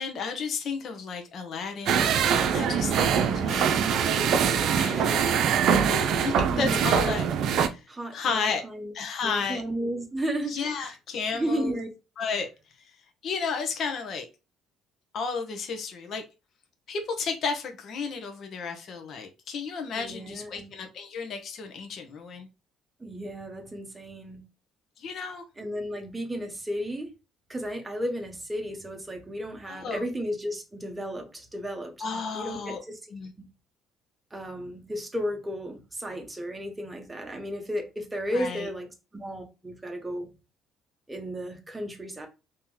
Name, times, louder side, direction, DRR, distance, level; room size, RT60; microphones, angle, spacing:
voice 1, 0.0-2.1 2.5-3.7 4.8-5.2 6.2-7.2 7.6-7.8 8.1-8.6 8.9-9.6 10.5-11.7 12.2-12.5 13.2-14.3 15.1-16.2 16.9-22.5 25.0-25.4 29.7-30.0 32.0-32.8 33.1-33.3 38.3-38.7, left 5 dB, 55° left, 1.0 m, -32 dB
sound 1, 1.9-7.7, right 7 dB, 70° right, 0.6 m, -23 dB
voice 2, 6.5-7.2 7.9-8.9 9.2-10.9 11.3-11.9 20.0-20.7 23.0-24.4 25.6-27.1 27.5-31.9 32.3-33.0 33.4-33.5 34.3-40.3 41.1-42.3, equal, 10° right, 1.2 m, -34 dB
3.0 x 2.9 x 3.9 m
cardioid pair, 95°, 0 cm